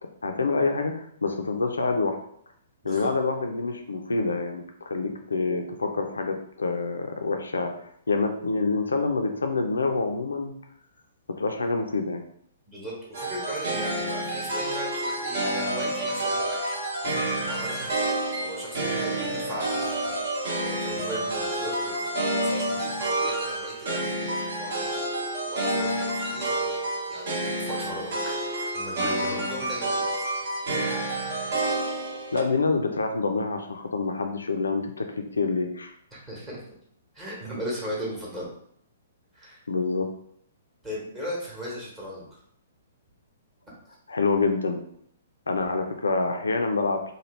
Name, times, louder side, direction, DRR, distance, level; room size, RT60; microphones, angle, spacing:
voice 1, 0.2-2.2 2.8-10.5 11.3-12.2 32.3-35.9 39.7-40.1 44.1-44.8 45.5-47.1, left 3 dB, 70° left, 5 dB, 0.4 m, -27 dB
voice 2, 2.8-3.2 12.7-16.8 17.4-24.9 25.5-26.8 27.1-30.0 36.1-36.6 37.1-38.5 39.3-39.6 40.8-42.4, equal, 15° right, -6 dB, 1.0 m, -38 dB
sound 1, 13.1-32.4, right 1 dB, 50° right, 0.9 m, -29 dB
3.1 x 2.3 x 3.1 m, 0.68 s
figure-of-eight pair, 115°, 0 cm